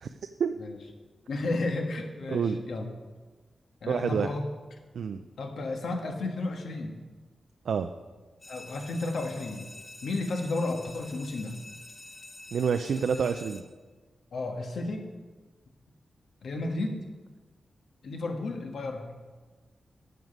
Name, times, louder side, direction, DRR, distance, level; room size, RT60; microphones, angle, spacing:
voice 1, 1.3-2.9 3.8-4.4 5.4-7.0 8.5-9.7 10.0-11.5 13.1-13.2 14.3-15.0 16.4-17.0 18.0-19.1, left 2 dB, 75° left, 3 dB, 1.5 m, -32 dB
voice 2, 2.3-2.6 3.9-4.3 4.9-5.2 7.7-7.9 12.5-13.6, right 6 dB, 80° right, 7 dB, 0.4 m, -28 dB
sound 1, 8.4-13.6, left 2 dB, 30° left, 1.1 m, -47 dB
11.0 x 7.8 x 5.3 m, 1.3 s
wide cardioid pair, 125°, 0 cm